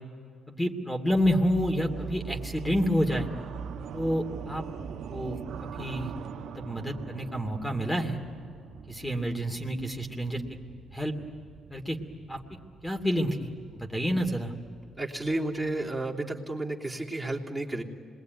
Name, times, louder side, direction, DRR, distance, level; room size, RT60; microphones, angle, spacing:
voice 1, 0.5-3.3 3.9-4.6 5.1-6.1 6.5-8.2 8.9-10.4 10.9-11.1 11.7-12.0 12.3-12.4 12.8-14.5, equal, 5° left, 4 dB, 2.8 m, -29 dB
sound 1, 1.1-16.0, right 7 dB, 75° right, 1.3 m, -42 dB
voice 2, 15.0-17.8, right 2 dB, 10° right, -3 dB, 3.2 m, -32 dB
27.0 x 21.5 x 9.5 m, 2.3 s
cardioid pair, 90°, 0 cm